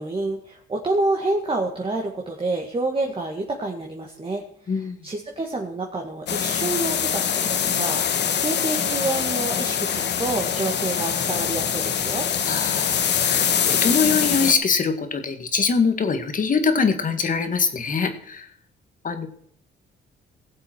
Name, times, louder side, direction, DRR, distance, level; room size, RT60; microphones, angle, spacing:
voice 1, 0.0-12.3, right 2 dB, 25° right, 1 dB, 1.9 m, -28 dB
sound 1, 6.3-14.5, left 8 dB, 60° left, 1.2 m, -23 dB
voice 2, 12.5-18.5 19.0-19.3, left 5 dB, 40° left, 8 dB, 1.8 m, -23 dB
18.0 x 7.5 x 4.6 m, 0.63 s
cardioid pair, 90°, 20 cm